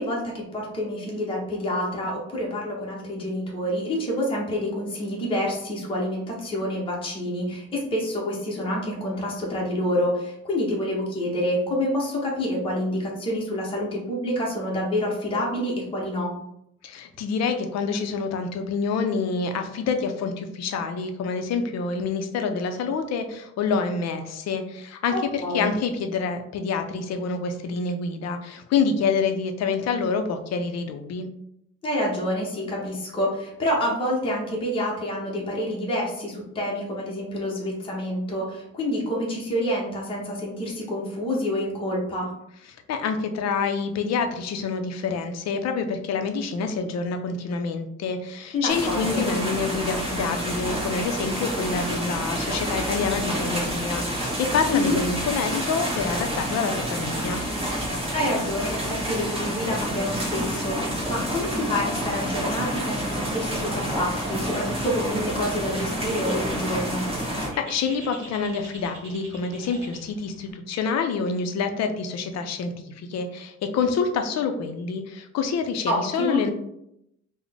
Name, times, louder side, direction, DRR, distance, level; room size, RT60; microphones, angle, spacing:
voice 1, 0.0-16.3 25.1-25.7 31.8-42.3 48.5-49.2 54.7-55.0 58.1-67.0 75.9-76.4, left 1 dB, 20° left, -3 dB, 0.7 m, -27 dB
voice 2, 16.8-31.3 42.9-57.4 67.3-72.7 73.1-76.5, left 5 dB, 60° left, 6 dB, 0.5 m, -27 dB
sound 1, 48.7-67.5, equal, 20° right, 1.2 m, -29 dB
Bird, 65.5-70.5, right 1 dB, 45° right, 1.3 m, -46 dB
3.9 x 2.1 x 3.3 m, 0.78 s
cardioid pair, 175°, 30 cm